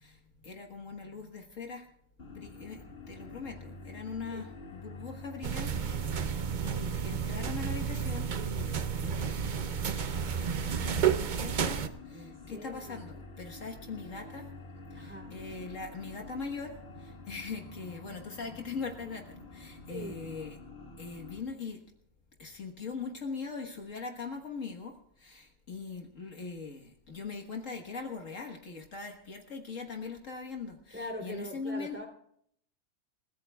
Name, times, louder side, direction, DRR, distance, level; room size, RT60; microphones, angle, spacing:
voice 1, 0.0-1.9 2.3-14.5 14.9-20.6 21.0-21.8 22.4-32.0, left 4 dB, 60° left, 2 dB, 1.8 m, -41 dB
sound 1, 2.2-21.4, left 3 dB, 45° left, 1.7 m, -48 dB
sound 2, 5.4-11.9, right 7 dB, 50° right, 0.6 m, -31 dB
voice 2, 12.1-13.0 14.9-15.3 19.9-20.2 30.9-32.1, left 1 dB, 5° right, 1 dB, 3.0 m, -42 dB
29.5 x 15.0 x 2.3 m, 0.68 s
omnidirectional pair, 1.5 m